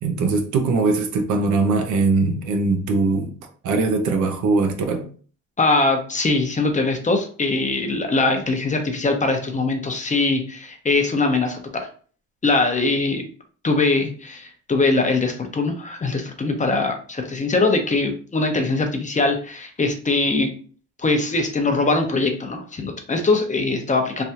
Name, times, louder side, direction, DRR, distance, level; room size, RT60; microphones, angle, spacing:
voice 1, 0.0-3.3 3.6-5.1, right 3 dB, 75° right, 0.7 m, -21 dB
voice 2, 5.6-11.9 12.4-13.2 13.6-20.5 21.0-24.2, left 3 dB, 25° left, 0.7 m, -22 dB
3.3 x 2.3 x 2.8 m
cardioid pair, 90°, 30 cm